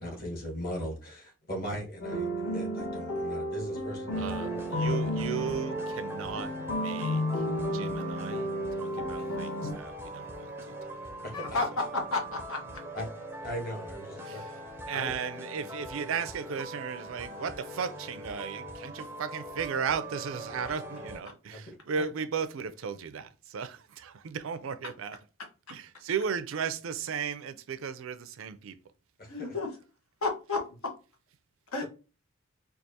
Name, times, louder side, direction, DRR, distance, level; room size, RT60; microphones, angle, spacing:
voice 1, 0.0-4.5 4.8-5.0 11.2-11.6 12.9-13.0 13.4-14.4 14.9-15.1 21.5-21.6 22.0-22.1 29.2-29.5, equal, 40° left, 1.4 m, -38 dB
sound 1, 2.0-9.7, equal, 60° left, 1.5 m, -32 dB
sound 2, 4.1-21.2, right 2 dB, 10° right, 0.4 m, -42 dB
voice 2, 4.2-7.4 7.7-8.5 8.8-11.0 14.2-14.6 14.9-25.2 25.7-28.8, right 6 dB, 70° right, 0.4 m, -35 dB
voice 3, 11.3-11.6 11.9-12.6 29.3-29.7 30.2-30.6 31.7-31.8, left 3 dB, 80° left, 1.1 m, -31 dB
4.5 x 2.4 x 2.7 m
head